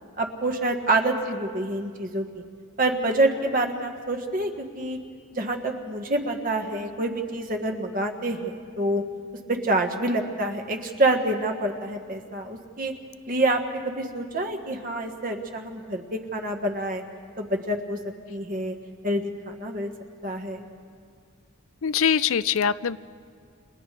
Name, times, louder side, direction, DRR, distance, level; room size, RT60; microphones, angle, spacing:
voice 1, 0.2-2.2 2.8-5.0 5.3-9.0 9.5-12.9 13.3-17.0 17.4-18.0 18.3-18.7 19.0-19.9 20.2-20.7, right 2 dB, 40° right, 4 dB, 1.5 m, -27 dB
voice 2, 21.8-23.0, left 7 dB, 85° left, 16 dB, 0.5 m, -23 dB
30.0 x 28.5 x 3.4 m, 2.2 s
head